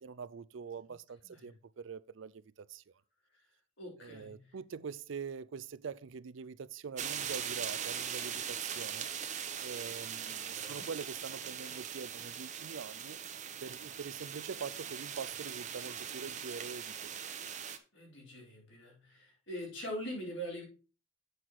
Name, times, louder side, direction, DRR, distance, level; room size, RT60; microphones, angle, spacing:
voice 1, 0.0-2.8 4.0-9.1 9.6-13.2 13.6-17.2, right 6 dB, 70° right, 0.4 m, -44 dB
voice 2, 3.8-4.5 10.2-10.9 17.9-20.6, equal, 70° left, 4.5 m, -43 dB
sound 1, 7.0-17.8, right 8 dB, 35° right, 0.8 m, -40 dB
7.9 x 6.0 x 4.6 m
head